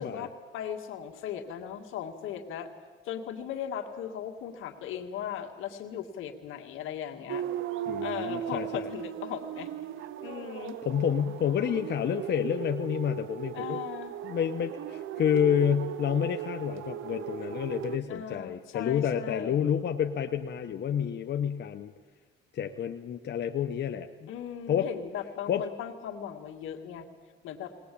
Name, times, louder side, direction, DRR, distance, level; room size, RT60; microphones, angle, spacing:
voice 1, 0.0-2.7 3.0-7.4 8.0-9.7 10.2-10.8 13.5-14.1 18.1-19.6 24.3-27.1 27.4-27.7, left 9 dB, 90° left, 4 dB, 2.2 m, -38 dB
sound 1, 7.3-18.0, right 11 dB, 80° right, 0.8 m, -37 dB
voice 2, 7.9-8.9 10.8-13.8 14.2-21.9 22.5-24.3 24.7-24.9 25.5-25.6, left 8 dB, 60° left, 6 dB, 1.0 m, -29 dB
20.0 x 20.0 x 8.6 m, 1.4 s
cardioid pair, 90°, 20 cm